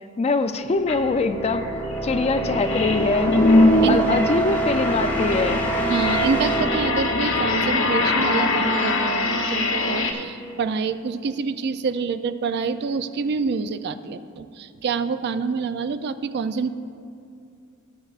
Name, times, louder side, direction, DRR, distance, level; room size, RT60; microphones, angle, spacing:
voice 1, 0.2-3.4 3.9-5.7, left 3 dB, 30° left, 9 dB, 0.4 m, -23 dB
sound 1, 0.7-8.4, right 2 dB, 10° left, 0.9 m, -27 dB
sound 2, 0.9-1.0 1.4-10.1, left 2 dB, 60° left, 0.8 m, -22 dB
voice 2, 5.9-16.7, right 5 dB, 50° right, 11 dB, 0.3 m, -27 dB
17.5 x 8.0 x 2.4 m, 2.4 s
head